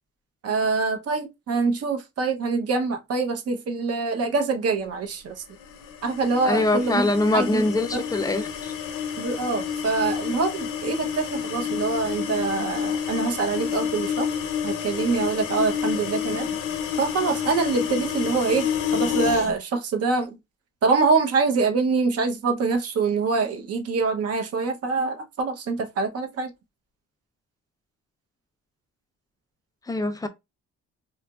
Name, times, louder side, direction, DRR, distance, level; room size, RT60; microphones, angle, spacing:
voice 1, 0.4-5.4 6.0-7.7 7.9-8.0 9.2-14.3 14.6-16.5 17.0-20.4 20.8-26.5, right 4 dB, 55° right, 0.7 m, -25 dB
sound 1, 5.6-19.5, left 8 dB, 90° left, 0.7 m, -29 dB
voice 2, 6.4-8.7 29.9-30.3, left 2 dB, 10° left, 0.4 m, -23 dB
2.9 x 2.4 x 2.3 m
cardioid pair, 90°, 30 cm